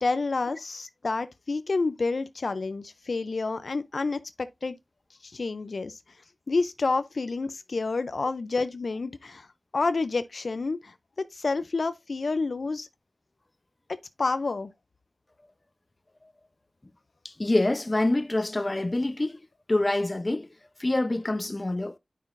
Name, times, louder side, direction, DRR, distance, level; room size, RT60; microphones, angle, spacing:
voice 1, 0.0-4.8 5.2-6.0 6.5-9.5 9.7-12.9 13.9-14.7, left 3 dB, 75° left, 0.5 m, -29 dB
voice 2, 17.2-19.4 19.7-20.5 20.8-22.0, left 2 dB, 35° left, 0.7 m, -26 dB
9.2 x 5.7 x 2.6 m
wide cardioid pair, 65°, 0 cm